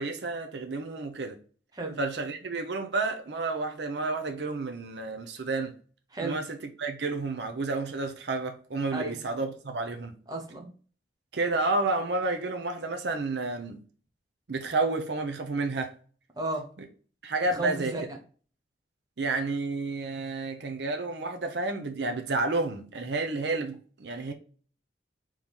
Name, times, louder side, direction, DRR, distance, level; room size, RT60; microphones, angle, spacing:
voice 1, 0.0-1.4 2.0-5.7 6.2-6.4 6.8-10.2 11.3-13.8 14.5-15.9 17.2-17.9 19.2-24.3, right 3 dB, 70° right, 0.6 m, -30 dB
voice 2, 10.3-10.7 16.4-16.7 17.5-18.0, right 2 dB, 20° right, 0.9 m, -33 dB
3.6 x 3.1 x 4.0 m
head